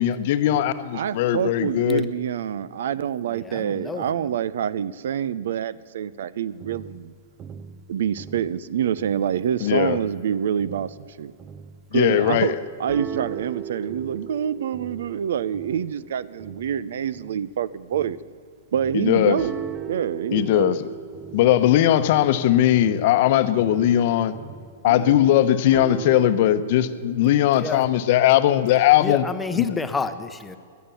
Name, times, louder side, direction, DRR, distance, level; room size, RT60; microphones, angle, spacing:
voice 1, 0.0-2.1 9.6-10.0 11.9-12.6 18.9-19.4 20.3-20.9 21.3-24.3 24.8-29.3 29.6-29.7, left 12 dB, 50° left, 12 dB, 0.9 m, -19 dB
voice 2, 0.9-7.1 7.9-11.3 11.9-12.5 12.8-18.2 18.7-19.6 19.8-20.8 24.8-25.2, right 9 dB, 70° right, 19 dB, 0.5 m, -26 dB
voice 3, 3.4-4.0 27.6-27.8 29.0-30.6, left 4 dB, 10° left, 9 dB, 0.8 m, -29 dB
sound 1, 6.6-9.5 9.8-18.4 18.7-26.3, right 8 dB, 25° right, 0.6 m, -39 dB
18.0 x 11.5 x 7.0 m, 2.3 s
hypercardioid pair, 145°, 0 cm